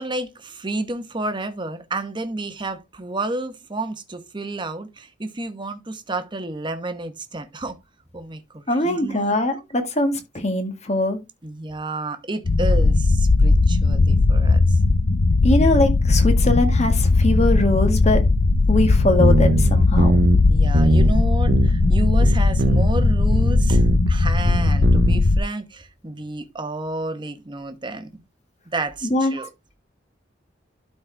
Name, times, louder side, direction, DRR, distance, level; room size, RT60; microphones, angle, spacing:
voice 1, 0.0-7.8 8.1-9.4 11.4-14.8 20.5-28.1 28.7-29.5, right 2 dB, 25° right, 1.1 m, -30 dB
voice 2, 8.7-11.2 15.4-18.2 18.7-20.2 29.0-29.3, left 1 dB, 40° left, 1.8 m, -21 dB
sound 1, 12.4-25.4, left 3 dB, 70° left, 0.6 m, -17 dB
sound 2, 18.9-20.4 20.7-21.1 21.5-21.9 22.2-24.1 24.5-25.2, right 3 dB, 60° right, 0.7 m, -22 dB
12.0 x 4.3 x 3.4 m
head